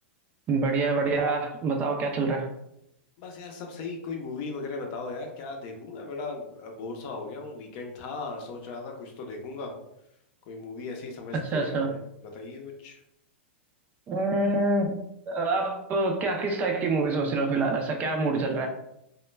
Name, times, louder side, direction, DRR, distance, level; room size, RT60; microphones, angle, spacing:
voice 1, 0.5-2.5 11.5-11.9 14.1-15.0 15.3-18.7, right 3 dB, 25° right, 0.3 m, -26 dB
voice 2, 3.2-9.7 10.5-13.0, left 3 dB, 45° left, 0.6 m, -37 dB
2.1 x 2.1 x 3.1 m
supercardioid pair, 140°, 6 cm